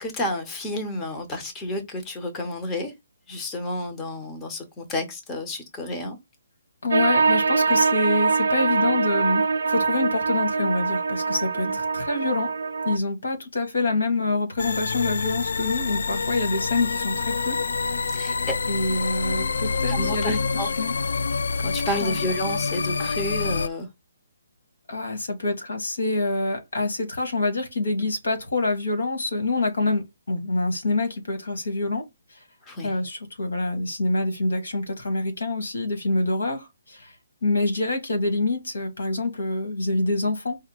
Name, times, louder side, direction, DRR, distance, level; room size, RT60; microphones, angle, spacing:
voice 1, 0.0-2.9 3.3-6.2 11.7-11.8 18.1-18.6 19.9-20.7 21.6-23.9 32.6-32.9, left 1 dB, 10° left, 0.8 m, -30 dB
voice 2, 6.8-12.5 12.8-17.6 18.7-20.9 22.0-22.2 24.9-32.0 32.3-32.4 32.8-37.1 37.4-40.6, left 2 dB, 90° left, 1.9 m, -26 dB
sound 1, 6.9-13.0, right 4 dB, 80° right, 0.4 m, -23 dB
sound 2, 14.6-23.7, left 4 dB, 70° left, 0.3 m, -27 dB
4.8 x 2.2 x 4.5 m
hypercardioid pair, 170°, 0 cm